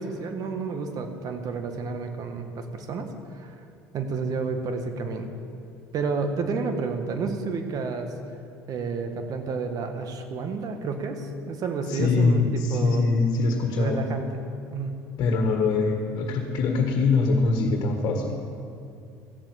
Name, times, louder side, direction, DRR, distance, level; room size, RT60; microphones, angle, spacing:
voice 1, 0.0-3.1 3.3-3.5 3.9-5.3 5.9-8.1 8.7-13.0 13.8-14.4 14.7-14.9, right 4 dB, 55° right, 6 dB, 1.7 m, -30 dB
voice 2, 11.9-14.1 15.2-18.3, left 3 dB, 60° left, 3 dB, 1.7 m, -23 dB
15.0 x 7.3 x 8.3 m, 2.5 s
supercardioid pair, 80°, 8 cm